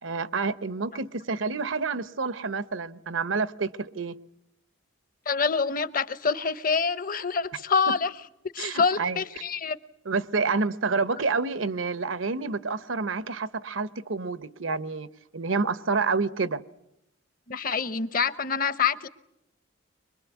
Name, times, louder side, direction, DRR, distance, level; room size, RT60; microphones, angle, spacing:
voice 1, 0.0-4.1 7.5-7.6 7.9-8.0 8.6-9.2 10.0-16.6, right 4 dB, 80° right, 0.9 m, -28 dB
voice 2, 5.3-8.1 8.5-9.8 17.5-19.1, left 5 dB, 45° left, 0.9 m, -26 dB
24.5 x 22.0 x 8.2 m
head